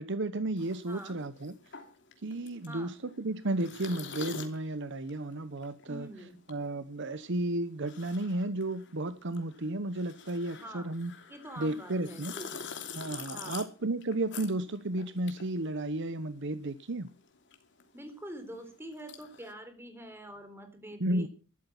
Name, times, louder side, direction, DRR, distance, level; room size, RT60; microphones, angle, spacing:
voice 1, 0.0-1.5 2.2-6.1 6.5-11.1 11.6-12.3 12.9-17.1 21.0-21.3, right 2 dB, 60° right, 0.9 m, -33 dB
sound 1, 0.6-16.4 16.6-19.5, left 6 dB, 60° left, 2.9 m, -47 dB
voice 2, 0.9-1.2 2.7-3.0 5.9-6.4 10.4-10.9 11.3-12.6 13.3-13.6 17.9-21.3, equal, 10° right, 3.7 m, -45 dB
13.5 x 12.5 x 6.0 m
head